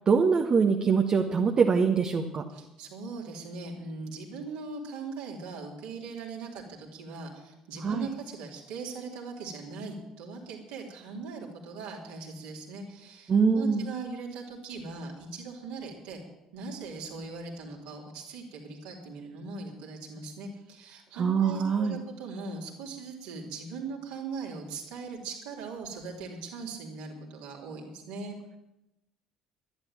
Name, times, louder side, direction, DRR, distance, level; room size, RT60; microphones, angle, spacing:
voice 1, 0.0-2.4 7.8-8.1 13.3-13.8 21.2-22.0, right 5 dB, 40° right, 3 dB, 1.5 m, -24 dB
voice 2, 2.5-16.2 16.5-28.4, right 4 dB, 70° right, -2 dB, 3.4 m, -40 dB
11.5 x 11.5 x 8.9 m, 0.91 s
hypercardioid pair, 55°, 2 cm